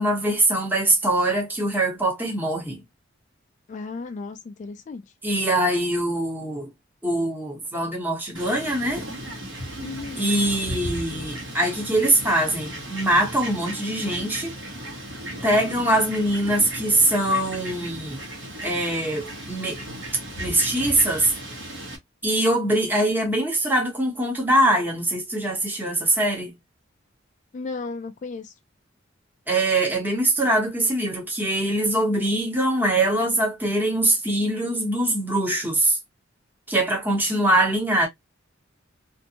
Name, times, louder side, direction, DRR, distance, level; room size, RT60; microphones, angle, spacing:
voice 1, 0.0-2.8 5.2-6.7 7.0-9.1 10.2-14.5 15.4-18.2 18.6-19.8 20.4-21.3 22.2-26.5 29.5-36.0 36.7-38.1, right 1 dB, 10° right, 1.0 m, -23 dB
voice 2, 3.7-5.0 9.8-10.3 27.5-28.5, left 4 dB, 35° left, 0.3 m, -34 dB
Fowl, 8.3-22.0, right 1 dB, 70° right, 1.1 m, -36 dB
2.5 x 2.2 x 2.7 m
head